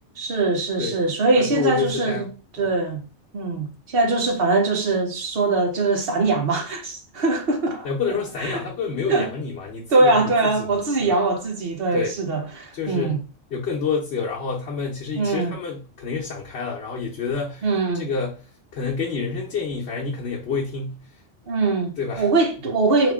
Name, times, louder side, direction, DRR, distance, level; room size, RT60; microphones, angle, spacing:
voice 1, 0.2-2.3 2.6-3.0 3.3-7.9 8.5-8.6 9.1-9.3 9.9-13.2 15.2-15.5 17.6-18.1 21.5-23.1, right 3 dB, 55° right, 1.0 m, -22 dB
voice 2, 1.4-2.3 2.6-2.7 7.8-10.7 11.0-11.2 11.9-12.1 12.7-13.2 13.5-17.7 17.9-18.4 18.7-21.1 22.0-22.3, left 5 dB, 60° left, 1.1 m, -28 dB
3.6 x 3.1 x 3.5 m
omnidirectional pair, 1.2 m